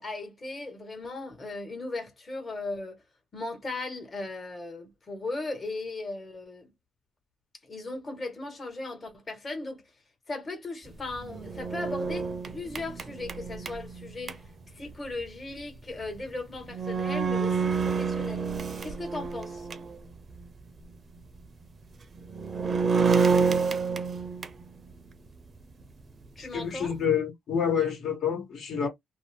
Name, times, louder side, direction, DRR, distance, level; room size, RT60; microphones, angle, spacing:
voice 1, 0.0-3.0 3.3-6.7 7.6-9.8 10.3-14.5 14.7-18.5 18.8-19.7 26.4-27.0, left 2 dB, 30° left, 1.3 m, -37 dB
sound 1, 11.1-14.3 16.2-16.3 16.7-20.0 20.4-20.5 22.2-24.7, right 5 dB, 40° right, 0.5 m, -28 dB
voice 2, 26.4-28.9, left 7 dB, 65° left, 1.3 m, -28 dB
2.6 x 2.0 x 3.3 m
cardioid pair, 90°, 0 cm